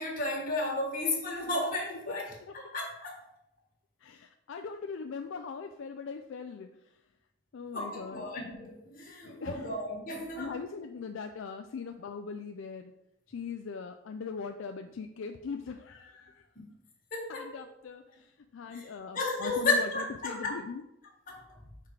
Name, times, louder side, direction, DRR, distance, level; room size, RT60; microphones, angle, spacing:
voice 1, 0.0-2.3 2.5-3.2 7.7-10.6 16.5-16.7 17.1-17.5 18.7-18.8 19.1-20.6 21.3-21.4, left 2 dB, 45° left, -1 dB, 1.7 m, -33 dB
voice 2, 4.0-6.9 7.5-8.2 9.2-9.7 10.4-12.9 13.3-16.5 17.3-20.8, left 5 dB, 70° left, 5 dB, 0.4 m, -40 dB
5.7 x 4.6 x 4.7 m, 0.87 s
head